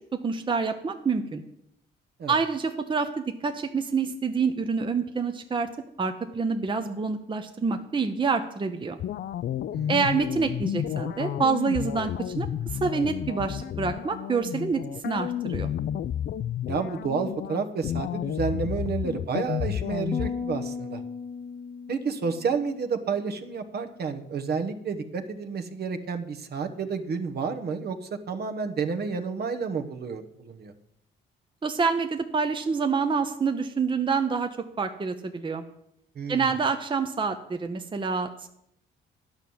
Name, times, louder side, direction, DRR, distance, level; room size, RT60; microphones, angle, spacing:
voice 1, 0.2-1.4 2.3-5.7 6.0-9.0 9.9-15.7 31.6-34.5 34.8-35.6 36.3-38.5, right 5 dB, 25° right, 6 dB, 0.8 m, -27 dB
sound 1, 9.0-20.3, left 10 dB, 55° left, 0.5 m, -31 dB
voice 2, 16.7-21.0 21.9-30.7 36.1-36.5, right 5 dB, 55° right, 7 dB, 1.1 m, -30 dB
sound 2, 20.1-23.5, left 5 dB, 20° left, 0.9 m, -37 dB
10.5 x 5.6 x 7.7 m, 0.77 s
cardioid pair, 90°, 20 cm